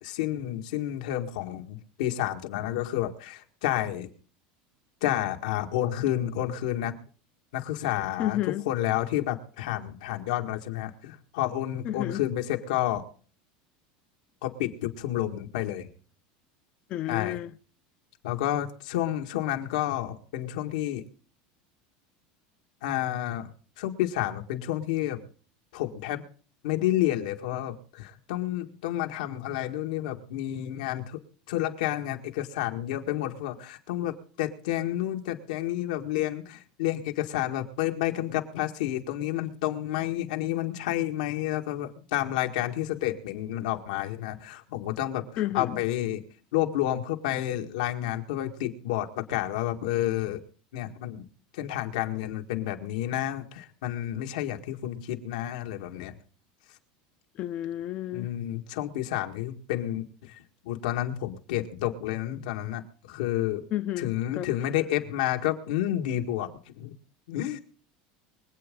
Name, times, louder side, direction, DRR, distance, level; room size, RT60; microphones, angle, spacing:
voice 1, 0.0-4.1 5.0-7.0 7.5-8.4 8.7-13.0 14.4-15.9 17.1-17.4 18.2-21.0 22.8-23.5 23.8-25.3 25.7-26.2 26.6-31.2 31.5-46.2 46.5-50.4 50.7-51.2 51.6-56.1 58.1-60.4 60.6-62.8 63.1-63.6 64.0-66.9 67.3-67.6, left 13 dB, 85° left, 1.9 m, -30 dB
voice 2, 8.2-8.7 11.8-12.2 16.9-17.6 45.4-45.8 57.4-58.3 63.7-64.5, left 13 dB, 40° left, 0.6 m, -31 dB
24.5 x 8.5 x 3.8 m
supercardioid pair, 150°, 4 cm